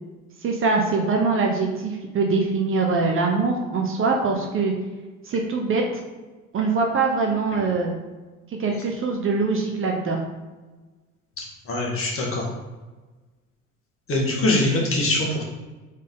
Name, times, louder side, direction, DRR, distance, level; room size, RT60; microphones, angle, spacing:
voice 1, 0.4-4.7 5.3-5.8 6.5-8.0 8.6-10.2, right 4 dB, 30° right, 1 dB, 0.7 m, -23 dB
voice 2, 11.7-12.4 14.1-15.4, left 2 dB, 35° left, -2 dB, 1.5 m, -22 dB
3.9 x 3.6 x 3.6 m, 1.2 s
figure-of-eight pair, 65°, 40 cm